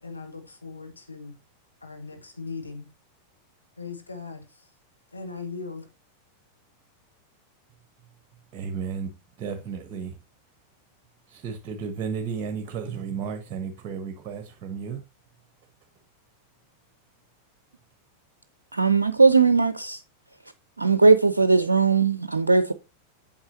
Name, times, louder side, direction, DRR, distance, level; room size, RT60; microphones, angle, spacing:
voice 1, 0.0-1.3 1.8-2.9 3.8-4.7 5.1-5.9, left 4 dB, 80° left, 1.6 m, -39 dB
voice 2, 8.5-9.1 9.4-10.2 11.3-15.0, right 6 dB, 35° right, 1.1 m, -33 dB
voice 3, 18.7-20.0 20.8-22.7, right 4 dB, 80° right, 0.5 m, -19 dB
8.7 x 7.0 x 2.8 m
figure-of-eight pair, 90°, 0 cm